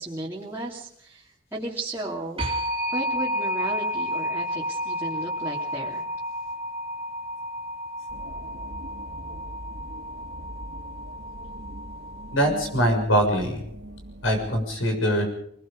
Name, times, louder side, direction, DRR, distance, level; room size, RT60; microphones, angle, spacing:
voice 1, 0.0-2.5 2.9-6.0, right 1 dB, 10° right, -6 dB, 2.8 m, -34 dB
sound 1, 2.4-13.0, equal, 30° right, 3.2 m, -32 dB
sound 2, 8.1-14.7, right 1 dB, 55° right, 1.7 m, -42 dB
voice 2, 12.3-13.6 14.2-15.2, equal, 80° left, 5 dB, 6.6 m, -22 dB
26.0 x 20.0 x 5.2 m, 0.67 s
head